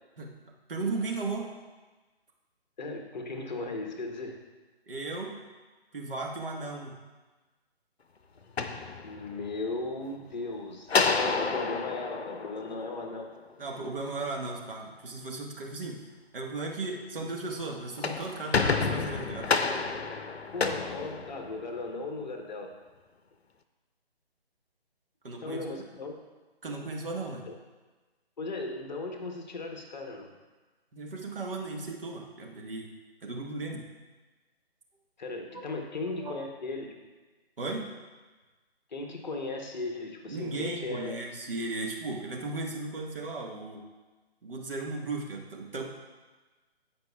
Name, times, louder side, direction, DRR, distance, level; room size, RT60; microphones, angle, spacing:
voice 1, 0.7-1.5 4.9-5.4 5.9-7.0 13.6-16.0 16.3-19.5 25.2-25.6 26.6-27.4 30.9-32.9 33.2-33.8 35.5-35.6 36.2-36.5 37.6-37.9 40.3-43.8 44.4-45.8, right 3 dB, 60° right, 0 dB, 1.5 m, -36 dB
voice 2, 2.8-4.4 9.0-13.3 20.5-22.7 25.4-26.1 27.5-27.6 28.4-30.3 35.2-36.9 38.9-41.2, left 2 dB, 45° left, 3 dB, 1.1 m, -36 dB
sound 1, 8.4-9.6 10.9-13.4 17.8-21.9, left 4 dB, 80° left, 0.7 m, -30 dB
15.5 x 5.2 x 2.3 m, 1.3 s
figure-of-eight pair, 150°, 31 cm